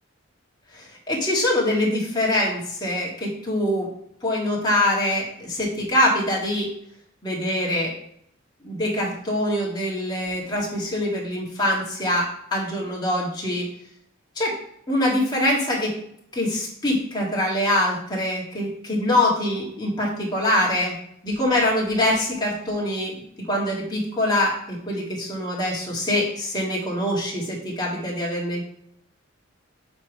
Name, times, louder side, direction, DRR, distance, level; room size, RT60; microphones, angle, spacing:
voice 1, 0.7-3.9 4.2-6.7 7.2-7.9 8.6-13.7 14.4-14.5 14.9-15.9 16.3-20.9 21.2-23.1 23.5-28.6, left 1 dB, 20° left, -4 dB, 1.9 m, -24 dB
7.4 x 3.3 x 5.1 m, 0.71 s
head